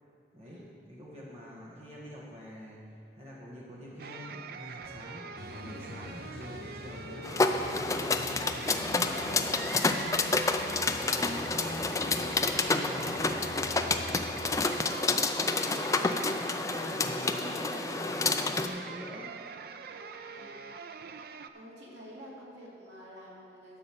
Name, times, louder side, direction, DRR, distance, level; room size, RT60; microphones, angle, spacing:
voice 1, 0.3-0.6 0.9-2.8 3.1-5.2 5.5-7.3 7.5-9.4 10.9-14.8 15.4-16.3 16.7-19.3, equal, 35° right, -5 dB, 1.5 m, -45 dB
sound 1, 4.0-21.5, right 5 dB, 55° right, 0.4 m, -44 dB
sound 2, 5.4-14.7, left 2 dB, 60° left, 0.6 m, -44 dB
sound 3, 7.2-18.7, left 3 dB, 20° left, 0.4 m, -29 dB
voice 2, 17.4-17.7 20.3-20.6 21.5-23.8, equal, 90° right, -6 dB, 2.7 m, -50 dB
12.0 x 5.4 x 7.1 m, 2.5 s
head